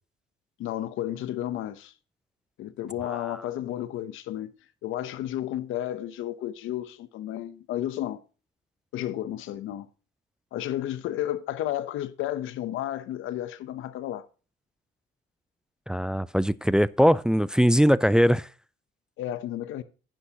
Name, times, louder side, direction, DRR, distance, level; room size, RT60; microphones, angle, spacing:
voice 1, 0.6-1.9 2.6-8.2 8.9-9.9 10.5-14.2 19.2-19.8, left 12 dB, 85° left, 0.8 m, -32 dB
voice 2, 3.1-3.4 15.9-18.5, equal, 5° right, 0.3 m, -21 dB
10.0 x 9.8 x 2.9 m
cardioid pair, 90°, 20 cm